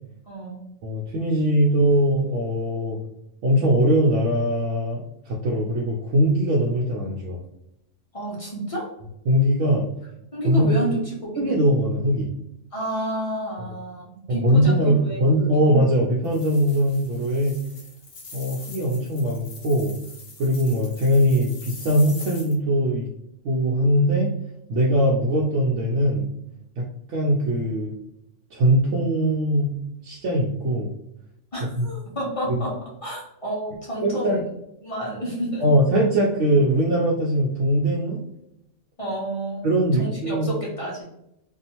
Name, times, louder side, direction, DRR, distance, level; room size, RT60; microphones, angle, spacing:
voice 1, 0.3-0.7 8.1-8.9 10.3-11.5 12.7-15.2 15.5-15.6 31.5-32.7 33.0-34.4 34.8-35.6 39.0-39.7 40.0-41.0, right 1 dB, 30° left, -5 dB, 0.8 m, -30 dB
voice 2, 0.8-3.0 3.4-7.4 9.3-9.9 10.4-10.7 11.4-12.3 14.3-17.6 18.3-19.9 20.4-23.1 23.4-24.3 24.7-26.3 26.8-28.0 28.5-29.7 30.0-30.9 31.8-31.9 34.0-34.4 35.6-38.2 39.6-40.5, equal, 75° right, -3 dB, 0.9 m, -21 dB
sound 1, 16.2-22.5, left 3 dB, 60° left, 0.9 m, -43 dB
2.6 x 2.4 x 2.9 m, 0.82 s
omnidirectional pair, 1.3 m